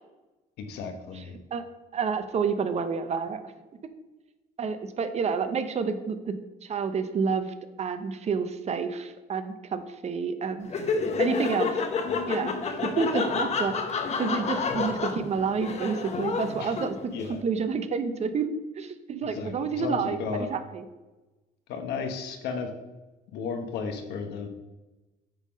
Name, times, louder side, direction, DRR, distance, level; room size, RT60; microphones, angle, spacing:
voice 1, 0.6-1.3 16.6-16.8 17.1-17.4 19.2-20.5 21.7-22.7 23.3-24.5, left 5 dB, 80° left, 6 dB, 1.1 m, -34 dB
voice 2, 1.9-3.4 4.6-6.3 6.6-7.5 7.8-10.7 11.2-11.8 12.3-13.7 14.2-17.1 17.4-18.5 18.8-20.8, right 5 dB, 40° right, 10 dB, 0.7 m, -29 dB
Laughter, 10.6-17.2, left 4 dB, 40° left, 0.8 m, -29 dB
9.1 x 3.7 x 5.2 m, 1.1 s
cardioid pair, 110°, 17 cm